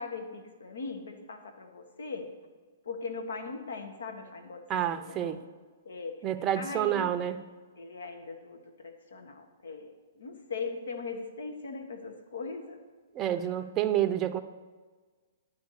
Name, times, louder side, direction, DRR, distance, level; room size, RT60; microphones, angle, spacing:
voice 1, 0.0-2.3 2.8-4.6 4.9-5.4 5.8-6.2 6.6-7.2 7.8-12.8 13.2-13.6, left 4 dB, 85° left, 6 dB, 1.3 m, -40 dB
voice 2, 4.7-5.4 6.2-7.4 13.1-14.4, right 11 dB, 25° right, 9 dB, 0.5 m, -28 dB
10.5 x 4.5 x 6.4 m, 1.4 s
hypercardioid pair, 140°, 0 cm